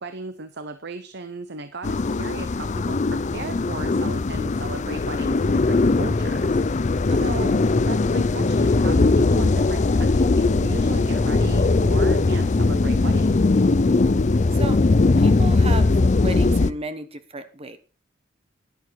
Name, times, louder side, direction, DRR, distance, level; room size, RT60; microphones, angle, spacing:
voice 1, 0.0-7.5 7.9-13.5, right 3 dB, 60° right, 10 dB, 0.9 m, -36 dB
sound 1, 1.8-16.7, left 3 dB, 40° left, 0.5 m, -20 dB
voice 2, 7.1-7.6 14.5-14.8 15.2-17.8, right 2 dB, 30° right, 10 dB, 1.2 m, -34 dB
11.0 x 11.0 x 4.7 m, 0.35 s
head